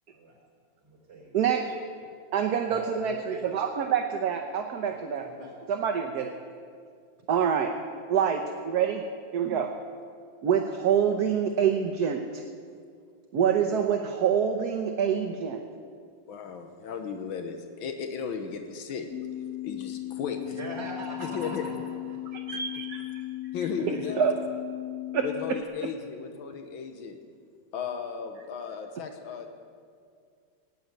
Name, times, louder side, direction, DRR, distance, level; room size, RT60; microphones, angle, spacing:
voice 1, 0.8-1.3 2.7-3.4 4.9-5.5 20.4-22.4 23.8-24.2, right 1 dB, 35° right, -3 dB, 4.8 m, -41 dB
voice 2, 1.3-1.7 2.3-3.1 3.4-5.3 5.7-6.3 7.3-7.7 8.1-9.0 9.3-9.7 10.4-12.4 13.3-15.6 22.5-23.0 24.2-24.3 25.1-25.2, right 8 dB, 60° right, 4 dB, 1.3 m, -26 dB
voice 3, 16.3-19.1 19.6-20.6 21.3-21.6 22.5-22.6 23.5-24.1 25.2-27.2 27.7-29.5, left 6 dB, 90° left, 5 dB, 1.8 m, -35 dB
sound 1, 19.1-25.6, left 15 dB, 70° left, 0.8 m, -37 dB
16.5 x 9.6 x 9.1 m, 2.2 s
omnidirectional pair, 2.1 m